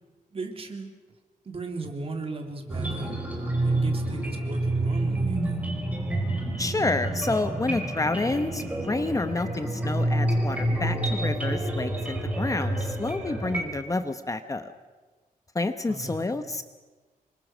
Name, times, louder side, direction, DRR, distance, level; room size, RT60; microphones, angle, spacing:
voice 1, 0.3-0.9 1.4-3.2 3.6-5.6 15.9-16.3, right 3 dB, 40° right, 4 dB, 3.4 m, -36 dB
sound 1, 2.7-13.6, right 1 dB, 10° right, 5.4 m, -28 dB
voice 2, 6.6-14.7 15.5-16.6, left 2 dB, 20° left, 9 dB, 1.0 m, -29 dB
27.5 x 24.0 x 6.2 m, 1.3 s
wide cardioid pair, 125°, 15 cm